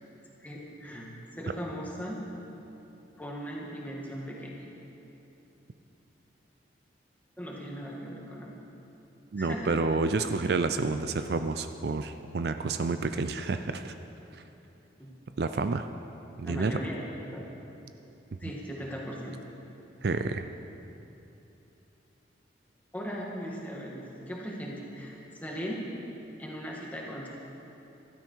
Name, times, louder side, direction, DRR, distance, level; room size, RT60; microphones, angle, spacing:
voice 1, 0.4-1.1 1.4-2.2 3.2-4.6 7.4-8.6 9.4-9.8 15.0-15.1 16.4-17.5 18.4-19.4 22.9-25.8 26.4-27.3, equal, 10° left, -3 dB, 1.9 m, -38 dB
voice 2, 9.3-13.9 14.3-14.4 15.4-15.9 16.4-16.8 20.0-20.5, right 3 dB, 55° right, 9 dB, 0.4 m, -29 dB
15.5 x 12.5 x 4.6 m, 3.0 s
head